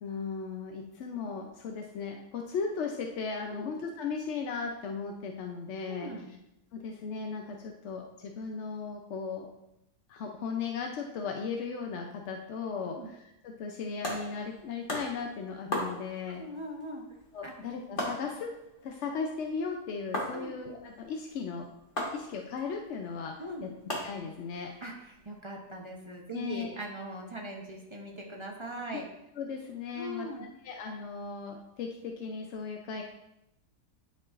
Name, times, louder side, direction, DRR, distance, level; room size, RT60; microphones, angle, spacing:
voice 1, 0.0-6.1 6.7-9.5 10.1-13.2 13.4-16.4 17.3-18.5 18.8-21.7 22.1-23.3 23.6-23.7 24.0-24.7 26.3-26.8 28.9-29.0 29.4-33.0, left 5 dB, 65° left, 2 dB, 0.7 m, -37 dB
voice 2, 5.9-6.3 12.8-13.1 16.4-17.0 17.4-17.5 20.3-20.5 23.4-23.7 24.8-29.1 29.9-30.5, right 1 dB, 30° right, -1 dB, 0.6 m, -40 dB
sound 1, 13.9-25.4, left 1 dB, 35° left, 1.4 m, -40 dB
10.5 x 4.5 x 2.4 m, 0.87 s
omnidirectional pair, 1.6 m